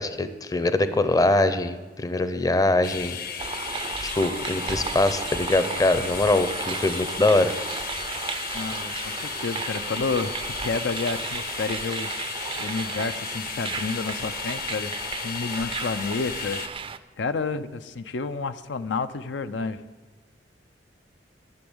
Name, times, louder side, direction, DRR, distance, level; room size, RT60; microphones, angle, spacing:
voice 1, 0.0-3.2 4.0-7.5, left 2 dB, 20° left, 11 dB, 0.6 m, -23 dB
sound 1, 2.8-16.7, left 7 dB, 55° left, 0.7 m, -35 dB
sound 2, 3.4-17.0, right 5 dB, 30° right, 0.4 m, -34 dB
voice 2, 8.5-12.1 12.6-14.9 15.2-16.6 17.2-19.8, left 4 dB, 90° left, 11 dB, 0.5 m, -30 dB
12.0 x 6.9 x 8.0 m, 1.3 s
head